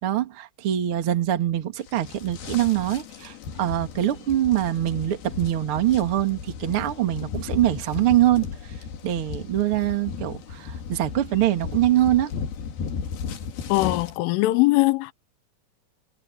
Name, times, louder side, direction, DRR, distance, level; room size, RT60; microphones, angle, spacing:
voice 1, 0.0-8.5 9.0-12.3, right 13 dB, 60° right, 1.4 m, -23 dB
sound 1, 1.8-14.2, left 6 dB, 55° left, 3.6 m, -35 dB
voice 2, 13.7-15.1, left 20 dB, 80° left, 3.3 m, -21 dB
omnidirectional pair, 5.9 m